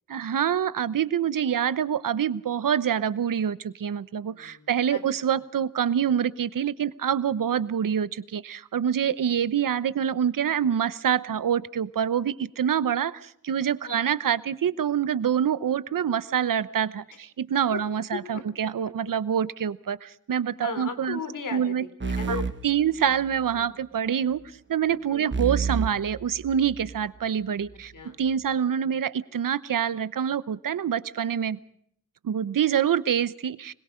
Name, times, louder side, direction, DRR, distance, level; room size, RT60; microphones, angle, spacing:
voice 1, 0.1-3.5 3.8-4.2 4.7-8.1 8.7-12.2 12.6-13.1 13.5-16.9 17.5-20.0 20.3-21.2 21.5-21.8 22.3-22.4 22.6-24.4 24.7-27.7 28.2-29.1 29.3-31.6 32.3-33.5, right 8 dB, 80° right, 16 dB, 0.9 m, -25 dB
voice 2, 1.3-1.7 4.2-5.0 7.6-7.8 9.3-9.4 13.8-14.0 17.7-17.8 18.1-18.7 20.6-22.4 23.5-23.7 25.1-25.3 27.9-28.2, left 5 dB, 70° left, 9 dB, 3.3 m, -37 dB
sound 1, 22.0-23.6 25.3-27.1, right 5 dB, 35° right, 1.5 m, -31 dB
25.5 x 21.5 x 5.1 m, 0.68 s
wide cardioid pair, 120°, 32 cm